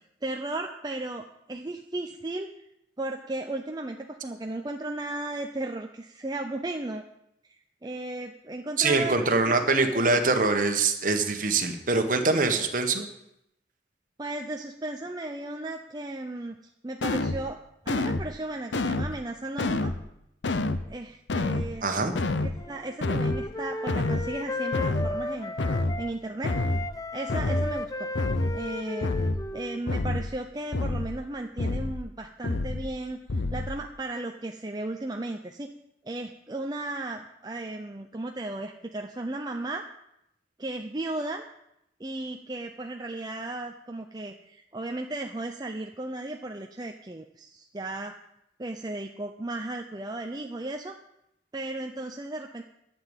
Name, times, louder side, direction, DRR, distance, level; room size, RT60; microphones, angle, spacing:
voice 1, 0.2-2.5 3.0-7.0 7.4-9.6 9.9-10.2 14.2-17.6 17.8-19.9 20.9-21.9 22.4-25.6 26.0-26.6 27.1-28.1 28.5-29.1 29.5-35.7 36.0-39.8 40.6-41.4 42.0-48.2 48.6-50.9 51.5-52.6, right 2 dB, 20° right, 3 dB, 0.6 m, -35 dB
voice 2, 8.8-13.1 21.8-22.1, right 3 dB, 45° right, 6 dB, 1.4 m, -24 dB
sound 1, 17.0-17.4 17.9-18.3 18.7-19.2 19.6-20.0 20.4-20.9 21.3-21.7 22.2-22.6 23.0-23.4 23.9-24.3 24.7-25.2 25.6-26.0 26.4-26.9 27.3-27.7 28.2-28.6 29.0-29.4 29.9-30.3 30.7-31.2 31.6-32.0 32.4-32.9 33.3-33.8, left 2 dB, 80° left, 0.7 m, -28 dB
Wind instrument woodwind instrument, 22.6-26.1 26.5-30.2, left 1 dB, 20° left, 0.7 m, -35 dB
11.5 x 6.9 x 9.1 m, 0.83 s
head